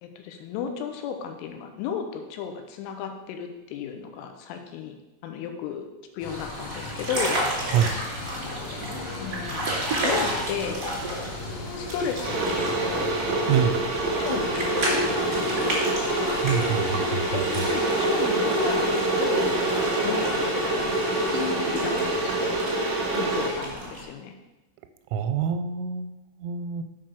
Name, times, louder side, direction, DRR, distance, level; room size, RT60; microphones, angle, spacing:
voice 1, 0.0-5.0 5.2-5.9 6.1-7.4 9.2-9.6 10.0-10.8 11.8-13.1 14.2-15.9 17.3-19.5 20.0-22.6 23.1-24.3, left 7 dB, 90° left, 6 dB, 3.3 m, -34 dB
sound 1, 6.2-23.6, left 3 dB, 70° left, 2.7 m, -33 dB
sound 2, 6.3-24.0, right 1 dB, 45° right, 1.2 m, -33 dB
Water / Boiling, 12.2-23.5, right 3 dB, 65° right, 1.7 m, -26 dB
voice 2, 16.4-17.7 25.1-26.8, right 8 dB, 85° right, 8 dB, 3.1 m, -26 dB
7.6 x 4.6 x 6.0 m, 1.0 s
omnidirectional pair, 5.7 m